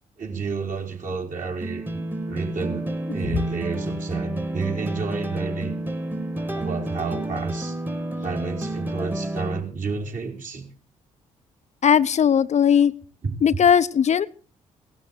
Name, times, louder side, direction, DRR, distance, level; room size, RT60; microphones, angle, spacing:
voice 1, 0.2-5.8 6.5-7.8 8.2-10.7 13.2-13.4, right 5 dB, 50° right, 2 dB, 3.9 m, -31 dB
sound 1, 1.6-9.6, right 1 dB, 10° right, 1.6 m, -30 dB
voice 2, 11.8-12.9 13.4-14.3, left 8 dB, 40° left, 14 dB, 0.6 m, -18 dB
17.5 x 12.5 x 4.6 m, 0.38 s
figure-of-eight pair, 40°, 17 cm